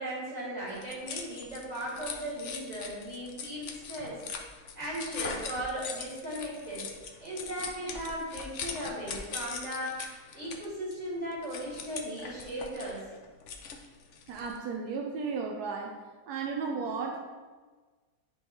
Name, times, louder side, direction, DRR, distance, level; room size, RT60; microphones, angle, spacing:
voice 1, 0.0-4.2 4.8-6.9 7.2-10.0 10.3-13.1, right 1 dB, 25° right, -7 dB, 2.3 m, -37 dB
sound 1, 0.7-14.6, left 5 dB, 60° left, 0.9 m, -41 dB
voice 2, 14.3-16.0 16.3-17.3, right 5 dB, 80° right, 2 dB, 1.2 m, -34 dB
10.0 x 3.9 x 3.0 m, 1.4 s
omnidirectional pair, 1.7 m